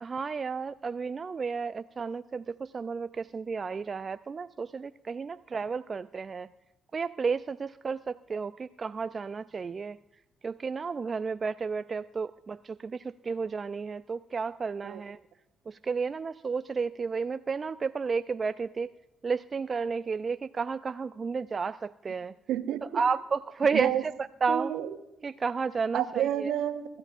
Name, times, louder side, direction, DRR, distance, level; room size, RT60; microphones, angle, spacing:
voice 1, 0.0-6.5 6.9-10.0 10.4-15.2 15.7-18.9 19.2-22.3 22.9-23.9 24.4-24.7 25.2-26.0 26.4-26.5, right 5 dB, 45° right, 13 dB, 0.4 m, -32 dB
voice 2, 22.5-23.0 23.7-24.1 24.5-25.0 25.9-27.0, right 10 dB, 75° right, 10 dB, 1.0 m, -30 dB
27.5 x 13.5 x 2.5 m, 0.95 s
hypercardioid pair, 45°, 0 cm